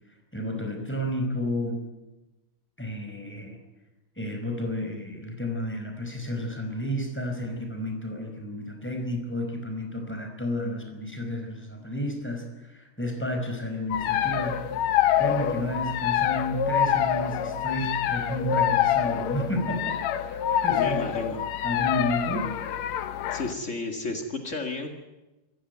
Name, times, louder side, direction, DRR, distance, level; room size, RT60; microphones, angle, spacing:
voice 1, 0.3-1.8 2.8-3.6 4.2-14.7 15.2-21.4 21.6-22.5, equal, 5° left, 3 dB, 4.5 m, -31 dB
sound 1, 13.9-23.5, left 10 dB, 80° left, 1.5 m, -26 dB
voice 2, 20.8-21.5 22.8-23.0 23.3-24.9, left 3 dB, 65° left, 4 dB, 0.7 m, -32 dB
26.5 x 15.0 x 9.5 m, 1.1 s
omnidirectional pair, 4.8 m